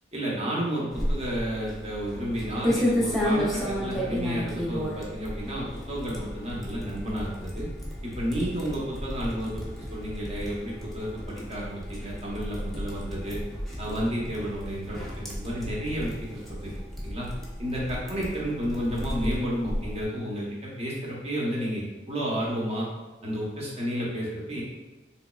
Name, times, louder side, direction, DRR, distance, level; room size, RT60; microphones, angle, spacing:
voice 1, 0.1-7.7 8.0-9.6 9.9-13.4 13.8-17.3 17.6-22.9 23.2-24.6, equal, 35° right, -4 dB, 0.8 m, -31 dB
sound 1, 0.9-20.0, equal, ahead, 0.5 m, -33 dB
3.4 x 3.0 x 2.3 m, 1.2 s
head